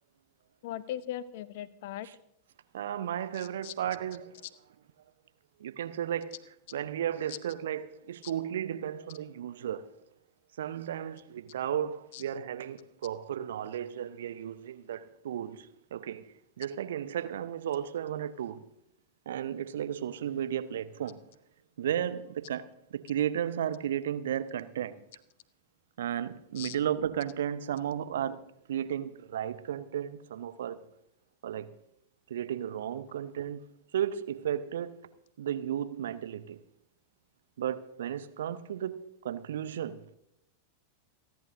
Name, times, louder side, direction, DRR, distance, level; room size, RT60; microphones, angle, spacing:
voice 1, 0.6-2.1 3.3-3.7 8.2-8.3 12.1-12.2 26.6-26.8, left 12 dB, 50° left, 0.7 m, -39 dB
voice 2, 2.7-4.4 5.6-6.3 6.7-9.9 10.6-16.3 16.6-18.6 19.3-21.2 21.8-25.0 26.0-30.8 31.4-31.7 32.3-33.6 33.9-35.0 35.4-36.6 37.6-40.2, right 10 dB, 60° right, 0.7 m, -34 dB
28.0 x 11.0 x 2.6 m
figure-of-eight pair, 90°, 0 cm